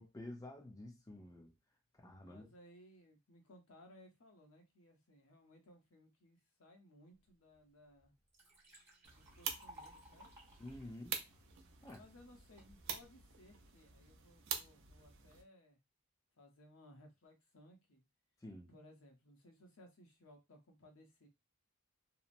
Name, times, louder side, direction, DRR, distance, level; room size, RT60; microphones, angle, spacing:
voice 1, 0.0-1.5 1.9-2.5 10.6-11.2 11.8-12.0 18.4-18.7, left 1 dB, 15° left, 0.4 m, -50 dB
voice 2, 2.2-8.1 9.1-10.3 11.9-15.8 16.3-18.0 18.7-21.3, left 1 dB, 75° left, 0.7 m, -62 dB
Liquid, 7.5-7.6 8.0-12.0 12.6-13.0, equal, 15° right, 0.9 m, -60 dB
sound 1, 9.0-15.4, right 7 dB, 60° right, 0.5 m, -47 dB
2.8 x 2.0 x 2.5 m
head